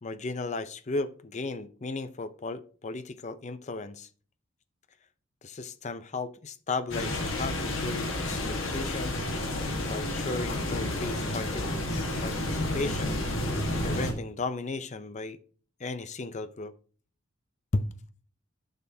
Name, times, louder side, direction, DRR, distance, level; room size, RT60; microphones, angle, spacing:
voice 1, 0.0-4.1 5.4-9.1 9.9-13.1 13.7-15.4 15.8-16.7 17.7-17.8, left 3 dB, 35° left, 0.5 m, -35 dB
sound 1, 6.9-14.1, left 1 dB, 65° left, 1.5 m, -30 dB
10.5 x 6.6 x 2.7 m
head